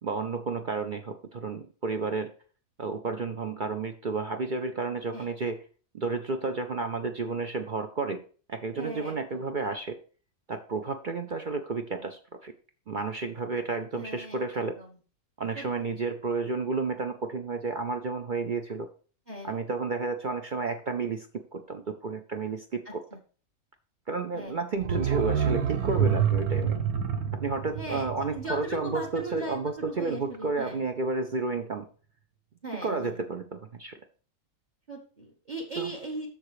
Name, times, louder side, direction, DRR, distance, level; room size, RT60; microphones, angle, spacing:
voice 1, 0.0-2.3 2.8-5.6 5.9-8.2 8.5-10.0 10.5-12.5 12.9-14.7 15.4-18.9 19.4-21.3 21.5-23.0 24.1-26.8 27.4-31.8 32.8-33.9 35.8-35.9, right 4 dB, 50° right, 6 dB, 0.6 m, -31 dB
voice 2, 8.7-9.4 14.0-14.9 15.5-15.6 19.3-19.5 22.8-23.2 24.3-24.6 27.7-30.8 32.6-33.2 34.9-36.3, right 1 dB, 30° right, 1 dB, 1.6 m, -39 dB
sound 1, 24.8-29.5 29.8-29.9, right 7 dB, 75° right, 1.5 m, -28 dB
7.3 x 6.5 x 4.9 m, 0.40 s
omnidirectional pair, 1.6 m